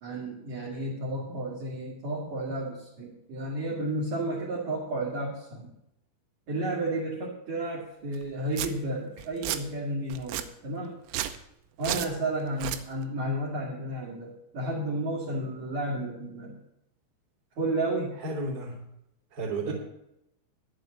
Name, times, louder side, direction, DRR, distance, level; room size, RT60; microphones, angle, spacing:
voice 1, 0.0-5.7 6.5-10.9 11.8-16.6 17.6-18.2 19.6-19.7, right 1 dB, 50° right, -5 dB, 3.1 m, -32 dB
Domestic sounds home sounds, 8.1-8.2 8.5-8.7 9.2-9.6 10.1-10.5 11.0-11.4 11.8-12.1 12.5-12.8, right 13 dB, 90° right, 3.4 m, -32 dB
voice 2, 18.2-18.9 19.3-19.7, right 2 dB, 35° right, -2 dB, 3.2 m, -33 dB
11.0 x 7.8 x 7.2 m, 0.84 s
omnidirectional pair, 5.9 m